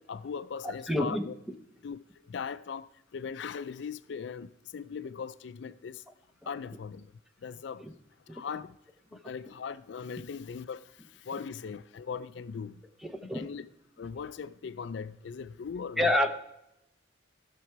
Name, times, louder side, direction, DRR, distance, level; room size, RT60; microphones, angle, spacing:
voice 1, 0.1-1.3 1.8-2.0 2.2-6.0 6.5-7.1 7.4-7.8 8.3-8.8 9.1-12.8 13.2-13.7 14.0-16.1, left 6 dB, 65° left, 0.4 m, -39 dB
voice 2, 0.6-1.2 6.4-6.5 8.3-8.4 13.0-13.5 16.0-16.3, left 1 dB, ahead, 0.8 m, -28 dB
15.0 x 6.8 x 4.6 m
head